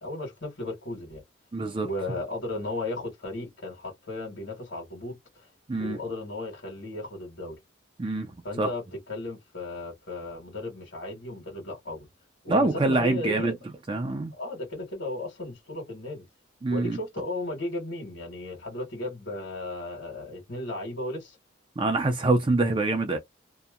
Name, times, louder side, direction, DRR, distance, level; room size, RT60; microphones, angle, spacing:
voice 1, 0.0-1.2 1.8-5.5 5.8-7.6 8.4-12.1 12.4-13.5 14.3-16.3 16.7-21.4, left 2 dB, 65° left, 1.4 m, -35 dB
voice 2, 1.5-1.9 5.7-6.0 8.0-8.3 8.6-8.7 12.5-13.5 13.9-14.3 16.6-17.0 21.8-23.2, right 2 dB, 25° right, 0.4 m, -25 dB
2.7 x 2.1 x 2.4 m
head